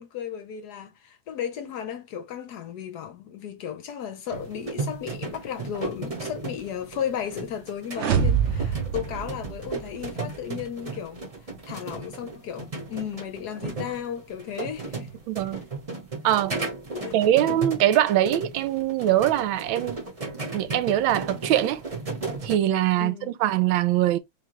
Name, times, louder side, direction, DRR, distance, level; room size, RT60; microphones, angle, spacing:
voice 1, 0.0-11.3 11.7-15.1 16.9-17.2 23.0-23.4, left 9 dB, 70° left, 1.0 m, -34 dB
sound 1, 4.3-22.6, right 3 dB, 25° right, 0.8 m, -35 dB
sound 2, 7.9-10.1, right 7 dB, 65° right, 0.7 m, -25 dB
voice 2, 15.3-15.6 16.2-16.6 17.1-20.0 20.5-21.8 22.4-24.2, right 12 dB, 85° right, 1.4 m, -22 dB
3.6 x 3.3 x 3.0 m
omnidirectional pair, 2.1 m